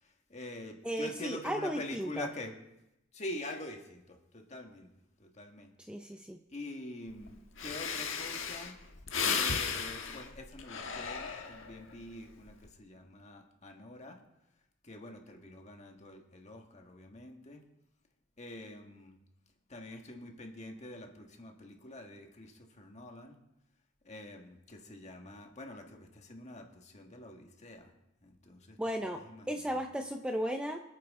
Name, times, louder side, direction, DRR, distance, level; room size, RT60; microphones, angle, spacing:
voice 1, 0.0-2.6 3.1-4.9 5.2-5.7 6.5-8.7 9.3-14.2 14.8-17.6 18.4-19.2 19.7-23.4 24.1-27.9 28.2-29.8, left 1 dB, 35° left, 3 dB, 1.7 m, -46 dB
voice 2, 0.8-2.3 5.9-6.4 28.8-30.8, equal, 5° right, 4 dB, 0.5 m, -35 dB
Breathing, 7.2-7.3 7.6-11.8 12.3-12.7, left 6 dB, 70° left, 1.4 m, -35 dB
25.0 x 9.2 x 3.7 m, 0.90 s
head